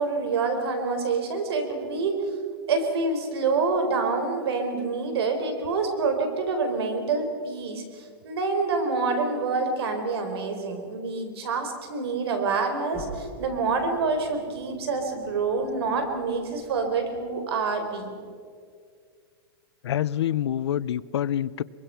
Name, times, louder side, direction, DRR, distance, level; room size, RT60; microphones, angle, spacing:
voice 1, 0.0-2.2 2.7-18.2, right 4 dB, 70° right, 6 dB, 4.5 m, -27 dB
sound 1, 12.9-17.7, right 1 dB, 10° right, 4.9 m, -46 dB
voice 2, 19.8-21.6, left 11 dB, 85° left, 20 dB, 0.6 m, -26 dB
23.5 x 22.5 x 5.9 m, 2.1 s
supercardioid pair, 165°, 14 cm